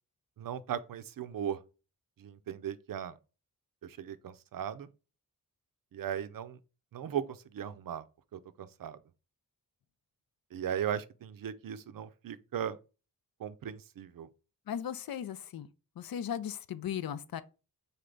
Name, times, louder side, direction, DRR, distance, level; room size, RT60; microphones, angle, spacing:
voice 1, 0.4-1.6 2.2-3.2 3.8-4.9 5.9-6.6 6.9-8.0 8.3-9.0 10.5-12.8 13.4-14.3, right 9 dB, 65° right, 0.5 m, -37 dB
voice 2, 14.7-15.7 16.0-17.4, left 9 dB, 70° left, 0.5 m, -37 dB
4.2 x 3.3 x 3.8 m
wide cardioid pair, 135°, 37 cm